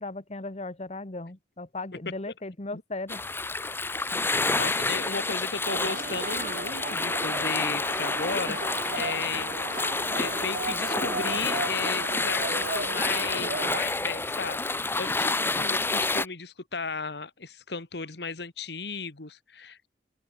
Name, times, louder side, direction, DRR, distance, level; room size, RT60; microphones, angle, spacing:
voice 1, 0.0-3.2 13.4-13.5, left 2 dB, 40° left, 1.3 m, -37 dB
sound 1, 3.1-16.3, left 3 dB, 15° left, 0.8 m, -29 dB
voice 2, 4.5-9.6 10.1-19.9, left 5 dB, 65° left, 1.7 m, -35 dB
sound 2, 5.6-13.8, right 3 dB, 50° right, 1.9 m, -35 dB
open air
head